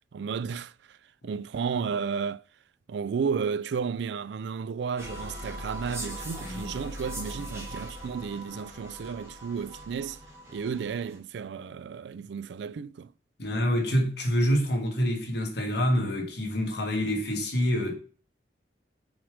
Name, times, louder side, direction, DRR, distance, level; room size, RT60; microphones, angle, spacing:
voice 1, 0.1-1.0 1.2-2.4 2.9-10.2 10.5-13.1, right 6 dB, 70° right, 0.4 m, -33 dB
sound 1, 5.0-11.2, equal, 15° right, 2.8 m, -40 dB
voice 2, 13.4-17.9, equal, 65° left, 2.2 m, -26 dB
6.2 x 4.9 x 4.9 m
head